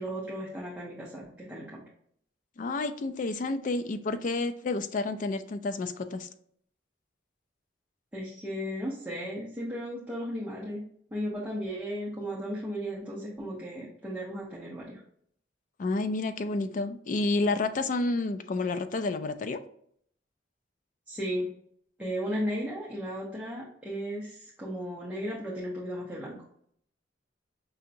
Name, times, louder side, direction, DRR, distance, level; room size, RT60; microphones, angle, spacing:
voice 1, 0.0-1.8 8.1-10.8 11.1-15.0 21.1-21.5 22.0-26.4, equal, 5° right, -7 dB, 0.8 m, -35 dB
voice 2, 2.6-6.3 15.8-19.6, left 3 dB, 45° left, 10 dB, 0.4 m, -30 dB
5.5 x 2.7 x 2.5 m, 0.66 s
head